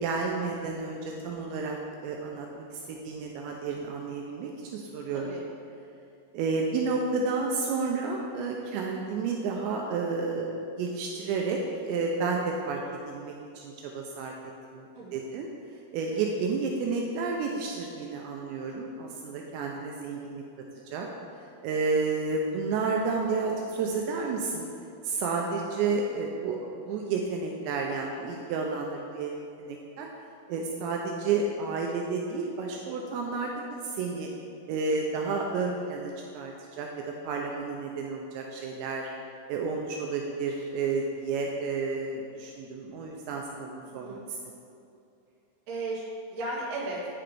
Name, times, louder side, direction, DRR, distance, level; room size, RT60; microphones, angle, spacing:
voice 1, 0.0-1.8 2.0-5.4 6.3-10.5 10.8-12.8 13.1-14.3 14.7-15.5 15.9-20.4 20.9-21.1 21.6-24.7 25.0-26.6 26.8-30.1 30.5-34.3 34.7-39.1 39.5-44.2, right 4 dB, 85° right, 0 dB, 2.6 m, -31 dB
voice 2, 43.9-44.2 45.7-47.0, right 2 dB, 65° right, -5 dB, 1.6 m, -36 dB
9.5 x 5.8 x 3.3 m, 2.6 s
omnidirectional pair, 5.4 m